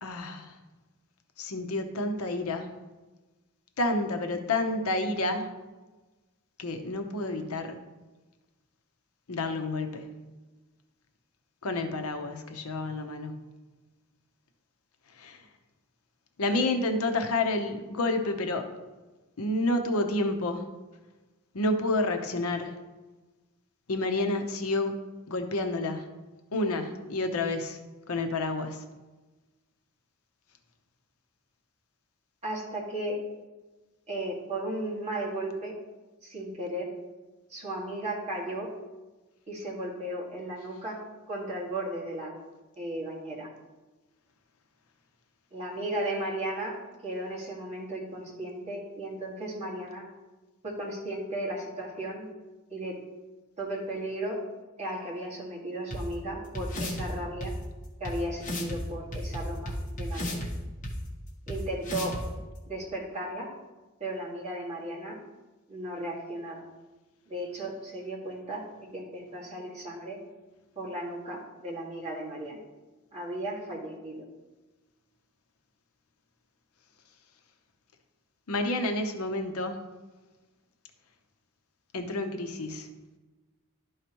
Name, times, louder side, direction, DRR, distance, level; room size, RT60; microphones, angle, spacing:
voice 1, 0.0-0.6 1.4-2.7 3.8-5.5 6.6-7.8 9.3-10.1 11.6-13.4 15.1-15.5 16.4-18.7 19.4-20.6 21.5-22.8 23.9-25.0 25.3-26.1 26.5-27.8 28.1-28.8 78.5-79.8 81.9-82.9, left 2 dB, 75° left, 6 dB, 0.8 m, -29 dB
voice 2, 32.4-33.2 34.1-35.8 36.2-36.9 37.5-38.7 39.5-41.0 41.3-42.3 42.8-43.5 45.5-50.1 50.6-52.3 52.7-53.0 53.6-54.4 54.8-57.6 58.0-60.5 61.5-62.2 62.7-63.5 64.0-65.2 65.7-66.7 67.3-68.7 68.9-70.2 70.8-72.6 73.1-74.3, right 1 dB, 30° right, -4 dB, 1.9 m, -35 dB
sound 1, 55.9-56.0 56.5-57.1 57.4-57.5 58.0-58.1 58.4-58.8 59.1-60.5 60.8-60.9 61.5-61.6 61.8-62.2, left 1 dB, 35° left, 1.3 m, -33 dB
12.0 x 4.8 x 3.0 m, 1.2 s
head